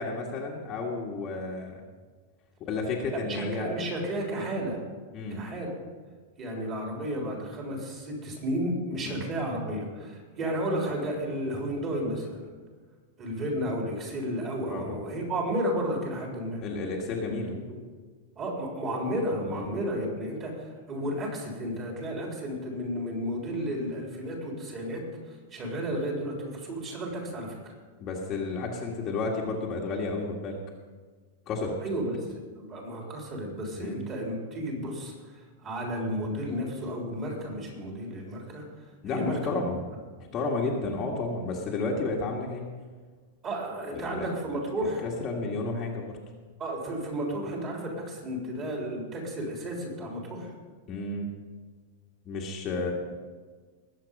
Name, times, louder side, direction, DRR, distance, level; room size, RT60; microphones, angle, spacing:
voice 1, 0.0-1.8 2.6-3.8 5.1-5.4 9.0-9.2 14.7-15.0 16.6-17.5 19.5-19.6 28.0-30.6 31.5-31.7 33.8-34.0 39.0-39.8 40.2-42.6 43.9-44.3 44.8-46.1 50.9-51.3 52.2-52.9, left 3 dB, 25° left, -1 dB, 1.7 m, -32 dB
voice 2, 3.3-4.8 5.3-5.7 6.4-12.4 13.2-16.6 17.5-17.8 18.4-27.7 31.8-35.1 35.6-38.6 39.1-39.6 43.4-45.0 46.6-50.5 52.7-52.9, equal, 25° right, -1 dB, 3.7 m, -32 dB
20.0 x 8.0 x 5.3 m, 1.4 s
supercardioid pair, 165°, 0 cm